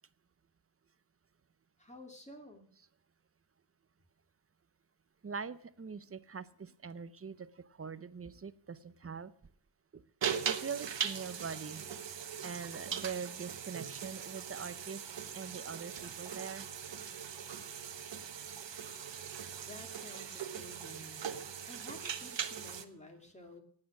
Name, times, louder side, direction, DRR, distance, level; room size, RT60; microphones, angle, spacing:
voice 1, 1.8-2.7 19.6-21.2 21.7-23.6, left 1 dB, 15° left, 3 dB, 2.4 m, -52 dB
voice 2, 5.2-9.3 9.9-10.0 10.4-11.8 12.4-15.0 15.3-16.7, right 6 dB, 30° right, 15 dB, 0.7 m, -43 dB
sound 1, 10.2-22.8, right 8 dB, 70° right, 1.3 m, -40 dB
17.5 x 8.7 x 6.0 m, 0.63 s
wide cardioid pair, 130°, 46 cm